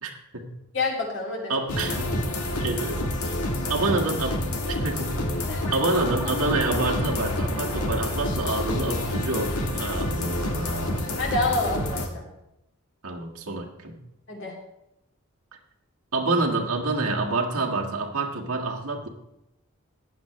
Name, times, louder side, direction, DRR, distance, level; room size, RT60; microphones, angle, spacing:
voice 1, 0.0-0.5 1.5-2.2 2.6-3.3 3.7-5.3 5.7-11.1 13.0-14.0 16.1-19.1, right 2 dB, 85° right, 0 dB, 1.7 m, -28 dB
voice 2, 0.7-1.5 5.5-5.6 11.2-12.2 14.3-14.5, left 2 dB, 55° left, -1 dB, 2.7 m, -27 dB
sound 1, 1.7-12.1, left 1 dB, 90° left, 1.5 m, -28 dB
15.0 x 9.6 x 3.1 m, 0.88 s
head